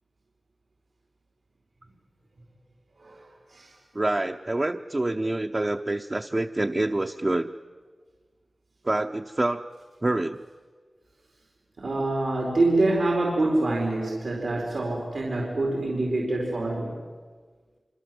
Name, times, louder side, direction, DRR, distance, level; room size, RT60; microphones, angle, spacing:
voice 1, 3.9-7.5 8.8-9.6 10.0-10.4, right 2 dB, 35° right, 4 dB, 0.9 m, -26 dB
voice 2, 11.8-17.0, right 2 dB, 90° right, -1 dB, 4.6 m, -25 dB
26.0 x 25.0 x 7.9 m, 1.5 s
wide cardioid pair, 70°, 0 cm